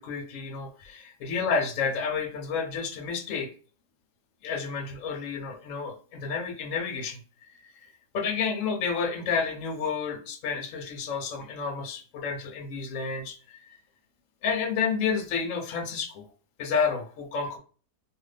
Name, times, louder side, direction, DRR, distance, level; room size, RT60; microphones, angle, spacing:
voice 1, 0.0-3.5 4.4-13.8 14.4-16.2 16.6-17.6, left 5 dB, 65° left, 5 dB, 0.8 m, -30 dB
2.6 x 2.4 x 3.2 m, 0.40 s
omnidirectional pair, 1.7 m